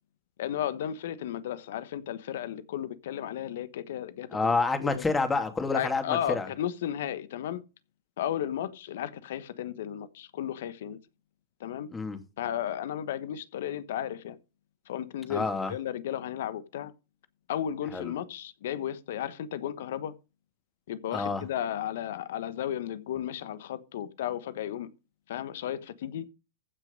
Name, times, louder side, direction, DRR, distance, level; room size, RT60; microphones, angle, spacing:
voice 1, 0.4-5.0 5.7-7.6 8.2-11.0 11.6-11.9 12.4-14.4 14.9-16.9 17.5-20.1 20.9-24.9 25.3-26.3, left 10 dB, 70° left, 1.2 m, -34 dB
voice 2, 4.3-6.5 11.9-12.2 15.3-15.7 17.9-18.1 21.1-21.4, left 3 dB, 15° left, 2.6 m, -28 dB
15.0 x 6.1 x 5.3 m
hypercardioid pair, 100°, 0 cm